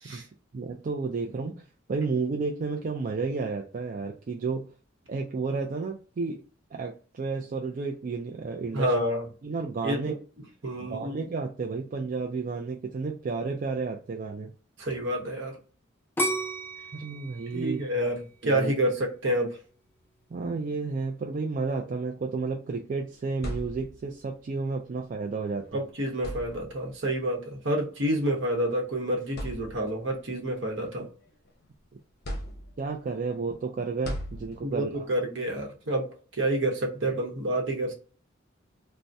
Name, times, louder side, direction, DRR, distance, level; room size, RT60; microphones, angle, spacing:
voice 1, 0.5-1.5 1.9-4.7 5.1-6.4 6.7-8.9 9.4-10.1 10.8-14.5 16.9-17.8 18.4-18.7 20.3-25.8 32.8-35.1, right 4 dB, 45° right, 0.4 m, -32 dB
voice 2, 8.7-9.3 9.8-10.2 10.6-11.2 14.8-15.5 17.5-19.6 25.7-31.1 34.6-36.1 36.4-37.9, right 1 dB, 65° right, 0.9 m, -28 dB
sound 1, 16.2-19.1 19.6-20.1, right 1 dB, 10° left, 0.6 m, -32 dB
sound 2, 23.1-24.2 25.5-25.6 26.1-27.0 28.1-28.3 28.8-28.9 29.3-30.1 30.6-31.7 32.2-33.0 34.0-34.9, equal, 55° left, 0.7 m, -38 dB
2.6 x 2.1 x 3.3 m
head